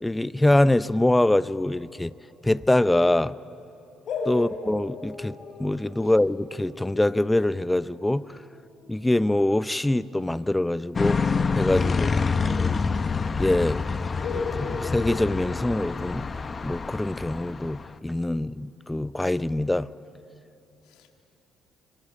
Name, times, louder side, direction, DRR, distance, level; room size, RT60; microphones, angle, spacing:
voice 1, 0.0-2.1 2.4-3.4 4.3-5.3 5.6-8.2 8.9-11.2 11.5-12.1 12.4-12.9 13.4-13.8 14.6-16.3 16.6-19.9, left 1 dB, 10° left, 17 dB, 0.6 m, -24 dB
sound 1, 4.1-9.5 11.7-13.2 13.5-13.6 14.2-16.4, left 4 dB, 60° left, 6.6 m, -37 dB
sound 2, 10.9-17.9, left 4 dB, 35° left, 0.9 m, -27 dB
voice 2, 20.8-21.2, left 8 dB, 85° left, 4 dB, 2.3 m, -56 dB
26.5 x 24.5 x 8.4 m, 2.8 s
supercardioid pair, 80°, 0 cm